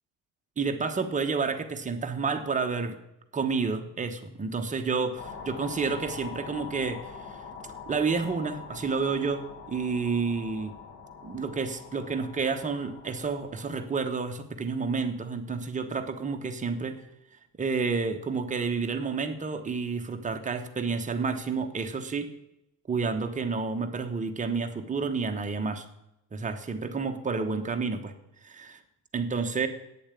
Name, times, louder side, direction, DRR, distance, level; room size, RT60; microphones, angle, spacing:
voice 1, 0.6-3.0 3.3-7.1 7.9-10.7 11.2-17.0 17.6-22.3 22.9-25.8 26.3-28.1 28.4-28.8 29.1-29.7, right 4 dB, 25° right, 6 dB, 1.1 m, -30 dB
sound 1, 5.2-13.9, left 5 dB, 45° left, 1.5 m, -44 dB
9.5 x 7.2 x 8.2 m, 0.84 s
cardioid pair, 125°, 33 cm